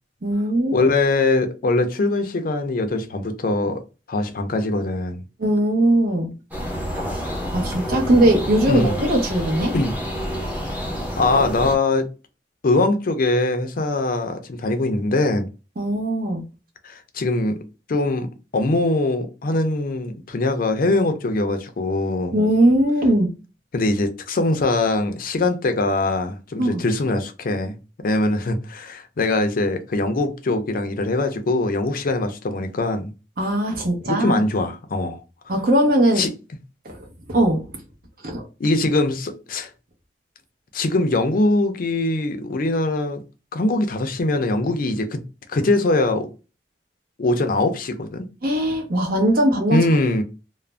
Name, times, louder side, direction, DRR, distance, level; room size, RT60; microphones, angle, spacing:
voice 1, 0.2-0.9 5.4-6.3 7.0-7.1 7.5-9.7 15.8-16.4 22.3-23.3 26.6-26.8 33.4-34.4 35.5-36.3 36.8-37.0 37.3-37.7 38.2-38.5 48.4-49.8, right 1 dB, 55° right, 0.8 m, -19 dB
voice 2, 0.7-3.8 4.1-5.2 8.7-8.9 9.7-9.9 11.2-12.1 12.6-15.5 16.8-17.6 17.9-22.4 23.7-27.8 28.0-33.1 34.0-35.2 36.2-36.3 38.6-39.7 40.7-43.2 43.5-45.2 45.5-46.3 47.2-48.3 49.7-50.2, left 2 dB, 55° left, 0.5 m, -22 dB
sound 1, 6.5-11.7, equal, 10° right, 0.7 m, -28 dB
2.4 x 2.0 x 3.2 m
head